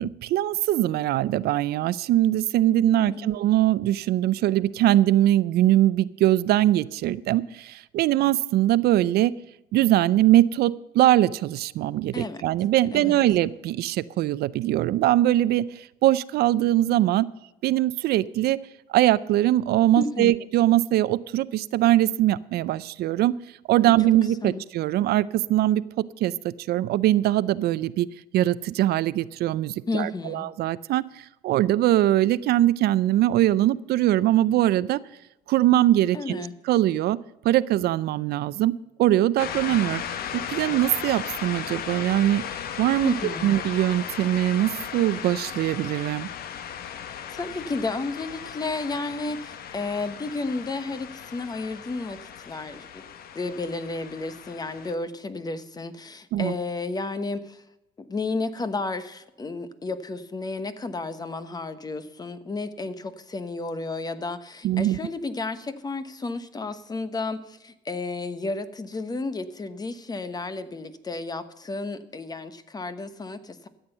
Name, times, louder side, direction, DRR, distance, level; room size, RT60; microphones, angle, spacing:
voice 1, 0.0-9.3 9.7-17.3 17.6-18.6 18.9-23.3 23.7-25.8 26.2-28.1 28.3-31.0 31.4-35.0 35.5-37.2 37.4-38.7 39.0-40.0 40.5-42.4 42.8-46.3 56.3-56.6 64.6-65.0, right 14 dB, 70° right, 18 dB, 0.5 m, -22 dB
voice 2, 12.9-13.2 20.0-20.4 23.8-23.9 24.4-24.6 29.9-30.5 36.1-36.5 43.0-43.5 47.3-53.0 53.3-57.6 58.0-73.7, left 3 dB, 25° left, 12 dB, 1.1 m, -32 dB
sound 1, 39.4-54.9, left 8 dB, 65° left, 1.1 m, -36 dB
13.5 x 8.0 x 6.6 m, 0.94 s
cardioid pair, 110°, 17 cm